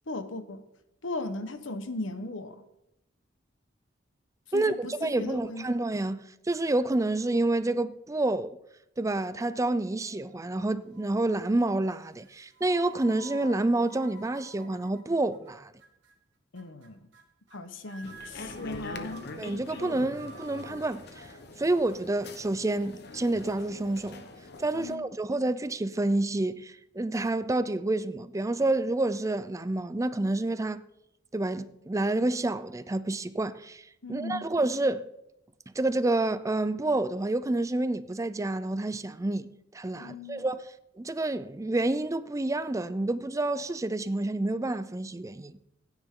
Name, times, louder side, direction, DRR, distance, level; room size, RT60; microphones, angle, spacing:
voice 1, 0.1-0.6 1.0-2.6 4.5-5.7 16.5-17.0 17.5-19.4 24.7-25.1 34.0-34.5 40.0-40.5, left 2 dB, 85° left, 1.1 m, -37 dB
voice 2, 4.5-8.6 9.0-15.7 19.4-21.3 21.6-24.2 24.6-30.8 31.3-35.1 35.7-39.5 39.7-40.6 41.0-45.6, right 2 dB, 15° right, 0.5 m, -28 dB
sound 1, 10.0-10.6 10.9-11.4 12.2-15.5 15.8-16.1 16.6-16.9 17.1-17.2 17.5-17.6 17.8-20.9, right 3 dB, 75° right, 1.8 m, -51 dB
sound 2, 18.0-25.0, left 2 dB, 60° left, 1.2 m, -44 dB
15.5 x 9.8 x 3.8 m
head